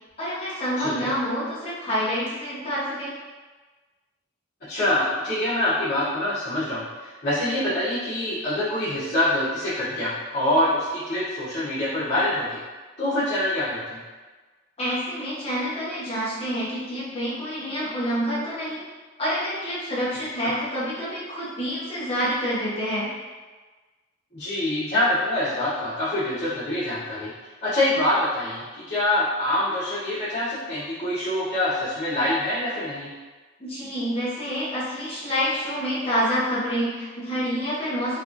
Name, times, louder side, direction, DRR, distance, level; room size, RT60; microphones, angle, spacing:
voice 1, 0.2-3.1 14.8-18.8 19.2-23.1 33.6-38.2, equal, 30° left, -9 dB, 1.0 m, -27 dB
voice 2, 0.8-1.1 4.7-12.6 13.0-14.0 24.3-27.3 27.6-33.1, left 1 dB, 45° left, -15 dB, 1.3 m, -25 dB
3.3 x 3.1 x 2.6 m, 1.3 s
head